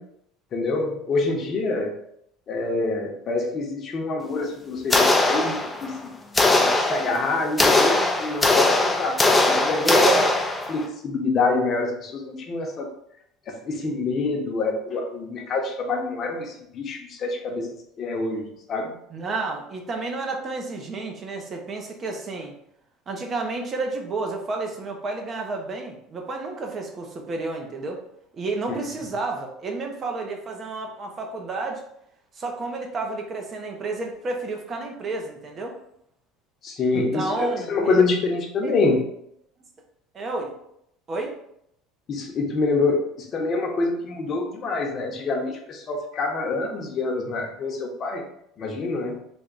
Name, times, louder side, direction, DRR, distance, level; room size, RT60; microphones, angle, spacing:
voice 1, 0.5-1.9 2.5-5.9 6.6-9.2 9.5-10.0 10.7-12.9 13.5-17.7 18.0-18.9 28.7-28.8 36.6-39.0 42.1-43.1 43.3-48.2 48.6-49.2, left 3 dB, 40° left, 2 dB, 0.8 m, -26 dB
sound 1, 4.9-6.0 6.4-10.9, left 2 dB, 15° left, 0.4 m, -20 dB
voice 2, 9.8-10.3 19.1-22.5 23.1-28.0 28.3-31.8 32.3-35.7 36.9-38.0 38.6-38.7 40.1-40.5 41.1-41.4, right 3 dB, 30° right, 2 dB, 0.7 m, -30 dB
3.4 x 2.3 x 3.9 m, 0.74 s
cardioid pair, 130°, 0 cm